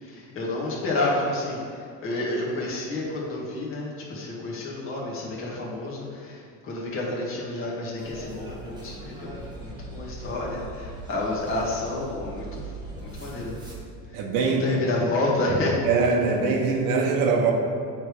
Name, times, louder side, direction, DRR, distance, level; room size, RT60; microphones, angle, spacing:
voice 1, 0.0-1.6 2.0-9.3 9.6-12.7 13.0-13.5 14.5-15.8, left 2 dB, 40° left, -4 dB, 1.7 m, -29 dB
sound 1, 8.0-13.8, right 2 dB, 10° right, 1.1 m, -40 dB
voice 2, 14.1-14.8 15.8-17.5, right 4 dB, 75° right, 2 dB, 1.1 m, -22 dB
8.8 x 3.6 x 4.7 m, 2.4 s
cardioid pair, 145°, 35 cm